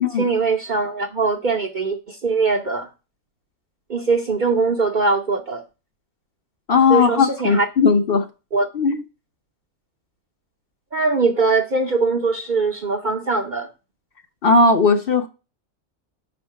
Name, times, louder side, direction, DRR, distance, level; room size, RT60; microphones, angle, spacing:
voice 1, 0.2-2.9 3.9-5.6 6.9-7.7 8.5-8.7 10.9-13.7, right 4 dB, 50° right, 0.6 m, -21 dB
voice 2, 6.7-8.3 8.7-9.0 14.4-15.3, left 4 dB, 50° left, 0.8 m, -17 dB
5.5 x 4.3 x 5.7 m
omnidirectional pair, 1.5 m